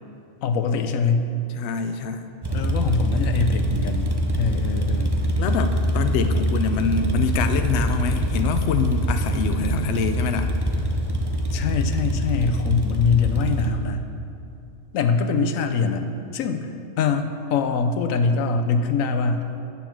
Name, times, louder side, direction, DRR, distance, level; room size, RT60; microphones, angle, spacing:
voice 1, 0.4-1.3 2.5-5.2 11.5-14.0 14.9-16.1 16.3-16.7 17.0-19.5, left 5 dB, 85° left, 8 dB, 1.1 m, -23 dB
voice 2, 1.6-2.2 5.4-10.5, left 6 dB, 65° left, 8 dB, 0.8 m, -25 dB
sound 1, 2.4-13.7, equal, 30° right, 0.5 m, -24 dB
8.9 x 7.0 x 5.9 m, 2.7 s
omnidirectional pair, 1.4 m